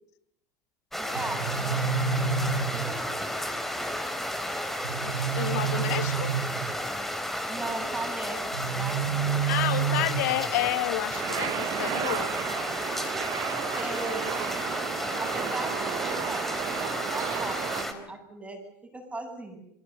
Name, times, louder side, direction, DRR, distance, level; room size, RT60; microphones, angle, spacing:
sound 1, 0.9-17.9, left 1 dB, 5° left, 3.7 m, -32 dB
voice 1, 1.0-1.8 2.1-3.2 7.5-9.3 13.4-14.4 15.2-19.6, right 2 dB, 15° right, 4 dB, 8.0 m, -38 dB
sound 2, 1.1-3.2 4.8-6.9 8.5-10.5, right 7 dB, 80° right, 5.0 m, -29 dB
voice 2, 5.0-6.3 9.4-12.3, left 15 dB, 65° left, 15 dB, 1.4 m, -30 dB
sound 3, 11.1-17.8, right 13 dB, 45° right, 1.3 m, -33 dB
27.5 x 22.5 x 7.0 m, 0.75 s
figure-of-eight pair, 70°, 9 cm